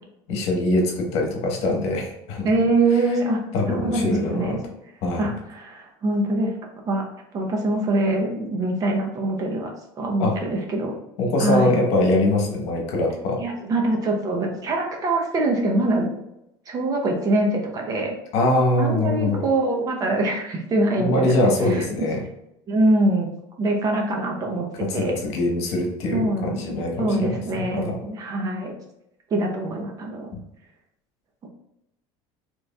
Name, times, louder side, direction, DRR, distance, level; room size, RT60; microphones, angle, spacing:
voice 1, 0.3-2.5 3.5-4.6 5.0-5.3 10.2-10.3 11.2-13.4 18.3-19.4 21.0-22.2 24.8-28.0, left 2 dB, 65° left, 0 dB, 1.2 m, -23 dB
voice 2, 2.4-3.4 3.7-4.6 5.2-6.5 6.9-7.0 7.3-9.7 10.0-10.9 11.4-11.7 13.4-16.1 16.7-18.1 18.8-21.8 22.7-23.3 23.6-25.1 26.1-26.6 27.0-28.7 29.3-30.3, right 2 dB, 35° right, 2 dB, 0.8 m, -23 dB
4.9 x 3.1 x 2.3 m, 0.83 s
cardioid pair, 155°, 11 cm